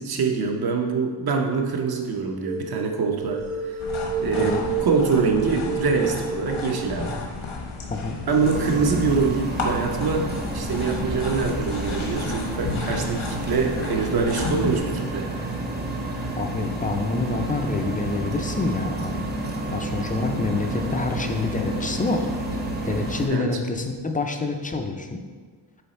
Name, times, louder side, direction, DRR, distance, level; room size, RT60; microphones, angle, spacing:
voice 1, 0.0-3.8 4.2-7.2 8.3-15.3 23.3-23.5, right 5 dB, 50° right, 3 dB, 0.8 m, -24 dB
sound 1, 2.4-2.7 3.2-7.0, right 5 dB, 70° right, 1.6 m, -30 dB
sound 2, 3.8-14.8, left 3 dB, 85° left, 1.3 m, -32 dB
sound 3, 8.4-23.3, right 1 dB, 20° right, 0.7 m, -30 dB
voice 2, 16.4-22.3 22.5-25.2, left 3 dB, 20° left, 4 dB, 0.4 m, -27 dB
6.9 x 4.0 x 4.2 m, 1.5 s
wide cardioid pair, 145°, 47 cm